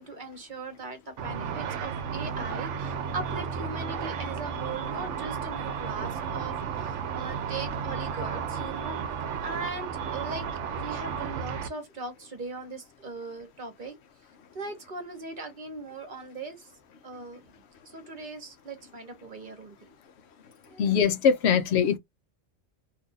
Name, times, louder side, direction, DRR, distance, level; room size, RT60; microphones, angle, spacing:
voice 1, 0.0-9.0 9.4-10.5 10.7-14.0 14.5-16.7 17.0-17.5 17.9-19.9 20.7-21.0, right 3 dB, 40° right, 1.1 m, -39 dB
Car / Traffic noise roadway noise / Engine, 1.2-11.7, right 6 dB, 70° right, 1.0 m, -33 dB
voice 2, 20.8-22.0, left 7 dB, 60° left, 0.8 m, -22 dB
2.8 x 2.5 x 3.8 m
omnidirectional pair, 1.3 m